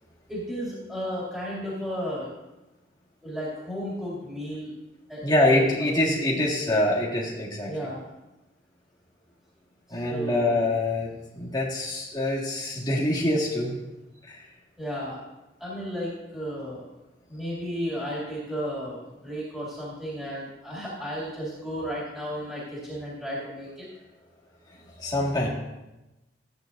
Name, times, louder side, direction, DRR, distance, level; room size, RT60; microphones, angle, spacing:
voice 1, 0.3-2.3 3.2-4.7 5.1-5.9 7.6-8.0 9.9-10.6 14.8-15.2 15.6-16.9 17.3-19.0 19.2-23.9, equal, 5° right, -8 dB, 2.4 m, -34 dB
voice 2, 5.2-7.7 9.9-13.8 14.2-14.4 25.0-25.5, left 1 dB, 20° left, -4 dB, 1.8 m, -25 dB
14.0 x 8.5 x 2.6 m, 1.0 s
head